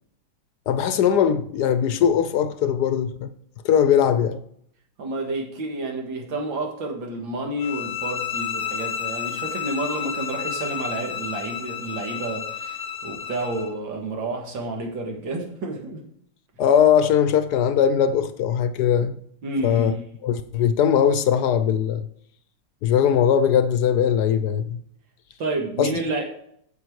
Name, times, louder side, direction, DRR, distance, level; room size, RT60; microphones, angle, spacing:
voice 1, 0.7-3.3 3.6-4.4 16.6-19.1 19.6-19.9 20.2-22.1 22.8-24.8 25.8-26.0, left 8 dB, 70° left, 1.1 m, -20 dB
voice 2, 5.0-16.0 19.4-20.0 25.4-26.3, right 2 dB, 85° right, 2.5 m, -30 dB
sound 1, 7.6-13.7, left 8 dB, 55° left, 0.6 m, -31 dB
8.5 x 7.5 x 4.7 m
omnidirectional pair, 2.0 m